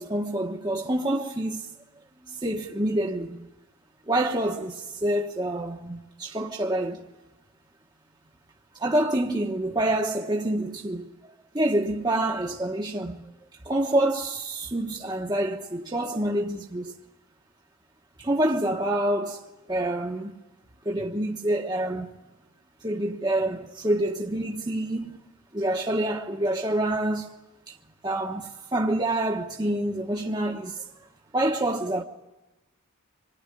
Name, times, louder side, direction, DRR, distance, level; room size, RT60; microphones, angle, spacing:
voice 1, 0.0-1.7 2.3-3.5 4.1-7.0 8.8-11.1 11.5-13.3 13.6-16.9 18.2-20.4 20.8-22.1 22.8-25.2 25.5-27.3 27.7-27.8 28.0-30.9 31.3-32.0, right 1 dB, 20° right, 1.1 m, -27 dB
25.5 x 21.0 x 9.9 m
head